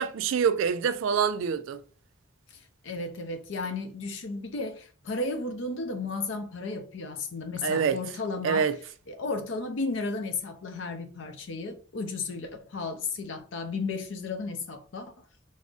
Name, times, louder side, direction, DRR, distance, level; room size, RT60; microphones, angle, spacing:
voice 1, 0.0-1.8 7.6-8.0 8.4-8.8, right 6 dB, 70° right, 0.3 m, -25 dB
voice 2, 2.5-8.7 9.1-15.1, left 3 dB, 65° left, 0.5 m, -34 dB
3.5 x 2.0 x 2.5 m
head